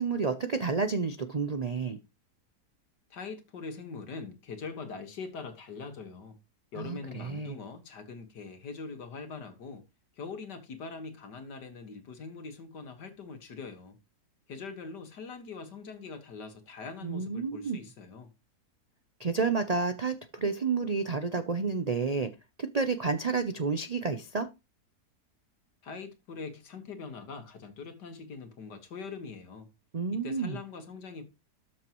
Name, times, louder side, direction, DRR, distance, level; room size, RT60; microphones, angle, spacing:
voice 1, 0.0-2.0 6.8-7.5 17.0-17.8 19.2-22.3 22.6-24.5 29.9-30.6, right 4 dB, 70° right, 0.3 m, -30 dB
voice 2, 3.1-6.4 6.7-9.8 10.2-14.0 14.5-18.3 25.8-29.7 30.1-31.2, left 4 dB, 85° left, 2.2 m, -42 dB
13.0 x 6.5 x 3.0 m
omnidirectional pair, 1.8 m